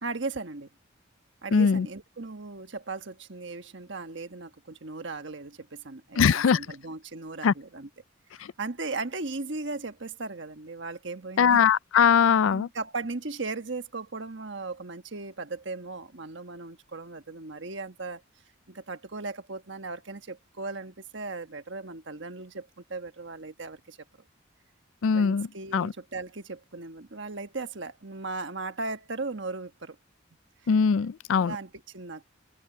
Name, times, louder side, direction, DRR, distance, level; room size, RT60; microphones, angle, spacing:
voice 1, 0.0-0.7 1.4-7.9 8.4-11.6 12.5-18.2 18.7-24.0 25.1-30.0 31.3-32.2, right 3 dB, 60° right, 1.3 m, -37 dB
voice 2, 1.5-1.9 6.2-6.6 7.4-7.5 11.4-12.7 25.0-25.5 25.7-25.9 30.7-31.6, left 6 dB, 75° left, 0.4 m, -21 dB
head